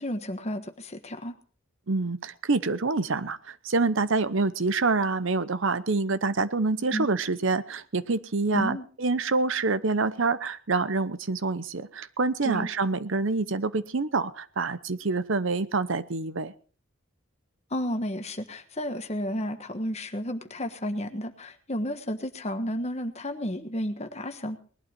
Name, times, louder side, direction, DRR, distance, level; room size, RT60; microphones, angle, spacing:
voice 1, 0.0-1.3 6.9-7.1 8.5-8.8 12.4-12.7 17.7-24.6, equal, 30° left, 8 dB, 1.3 m, -32 dB
voice 2, 1.9-16.5, right 3 dB, 65° right, 14 dB, 0.8 m, -26 dB
20.0 x 12.0 x 4.4 m, 0.41 s
head